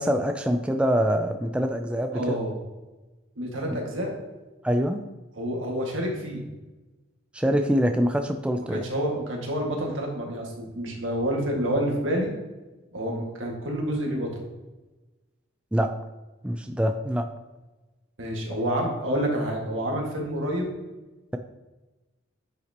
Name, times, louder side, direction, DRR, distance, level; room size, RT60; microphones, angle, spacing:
voice 1, 0.0-2.4 4.6-5.0 7.3-8.8 15.7-15.9 16.4-17.3, equal, 5° right, 5 dB, 0.3 m, -24 dB
voice 2, 2.1-2.6 3.4-4.1 5.3-6.5 8.7-12.3 12.9-14.4 18.2-20.7, equal, 80° right, 0 dB, 1.9 m, -28 dB
10.0 x 5.9 x 2.9 m, 1.1 s
head